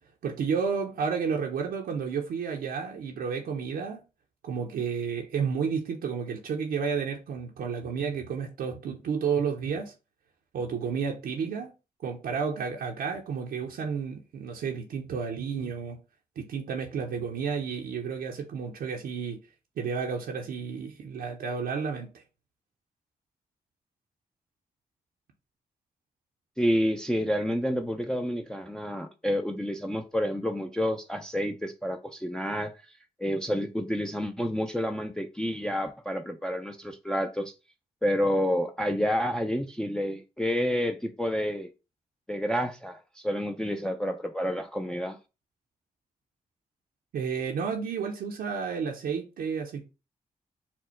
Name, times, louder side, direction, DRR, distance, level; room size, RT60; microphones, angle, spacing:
voice 1, 0.2-4.0 4.4-9.9 10.5-11.7 12.0-16.0 16.4-19.4 19.8-22.2 47.1-49.8, right 6 dB, 90° right, 0.6 m, -31 dB
voice 2, 26.6-32.7 33.2-37.5 38.0-41.7 42.3-45.2, equal, 5° left, 0.4 m, -29 dB
4.2 x 2.1 x 4.2 m
cardioid pair, 60°, 15 cm